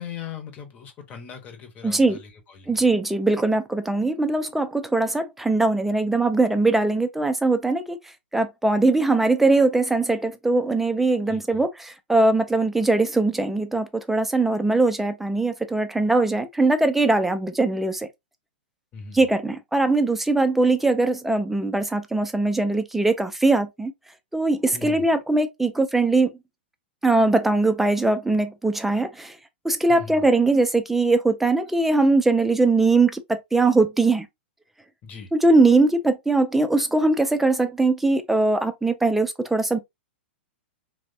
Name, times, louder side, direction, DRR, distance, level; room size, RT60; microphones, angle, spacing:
voice 1, 0.0-2.9 11.2-11.6 18.9-19.2 24.7-25.1 29.9-30.2 35.0-35.3, left 6 dB, 25° left, 0.8 m, -39 dB
voice 2, 1.8-2.2 2.7-8.0 8.3-18.1 19.1-23.9 24.3-26.3 27.0-29.4 29.6-34.3 35.3-39.8, right 2 dB, 5° right, 0.3 m, -21 dB
3.2 x 2.1 x 2.6 m
figure-of-eight pair, 105°, 6 cm